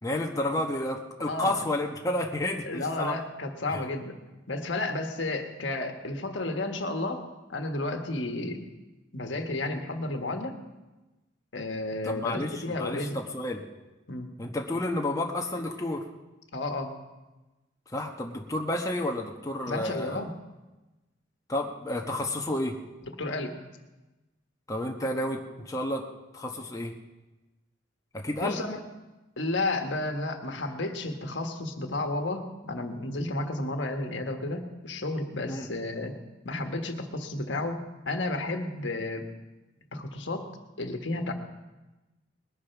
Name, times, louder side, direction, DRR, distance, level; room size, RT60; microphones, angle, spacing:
voice 1, 0.0-3.2 3.7-3.8 12.0-13.6 14.4-16.0 17.9-20.2 21.5-22.8 24.7-26.0 26.3-26.9 28.1-28.6 35.5-35.7, left 1 dB, 20° left, 1 dB, 1.0 m, -31 dB
voice 2, 1.2-1.6 2.6-4.2 4.5-7.2 7.5-8.7 9.1-10.6 11.5-13.2 14.1-14.3 16.5-16.9 19.6-20.3 23.2-23.5 28.4-28.8 29.4-36.1 36.4-39.3 39.9-40.5 40.8-41.3, left 2 dB, 75° left, 5 dB, 1.5 m, -32 dB
20.5 x 8.6 x 5.9 m, 1.1 s
head